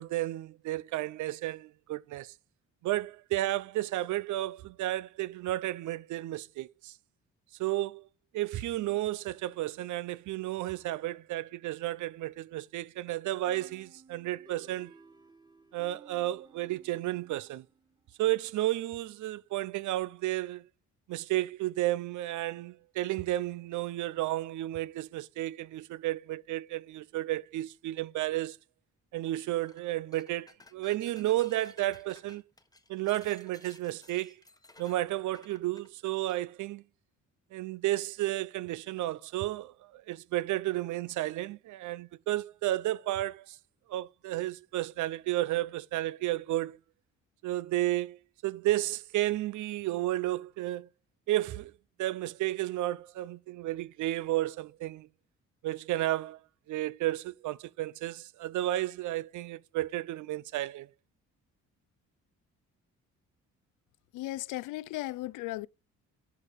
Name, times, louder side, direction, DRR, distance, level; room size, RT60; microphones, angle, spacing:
voice 1, 0.0-2.3 2.8-6.9 7.6-8.0 8.3-14.9 15.7-17.6 18.2-20.6 21.1-28.6 29.1-32.4 32.9-34.4 34.8-36.8 37.5-43.6 43.9-46.8 47.4-50.9 51.3-51.7 52.0-55.1 55.6-56.4 56.7-60.9, right 15 dB, 75° right, 0.6 m, -32 dB
sound 1, 13.5-18.1, right 3 dB, 15° right, 1.3 m, -58 dB
sound 2, 29.6-29.8 30.1-36.4, left 3 dB, 10° left, 1.1 m, -57 dB
voice 2, 64.1-65.7, left 17 dB, 85° left, 0.5 m, -36 dB
10.5 x 5.0 x 4.1 m
cardioid pair, 90°, 30 cm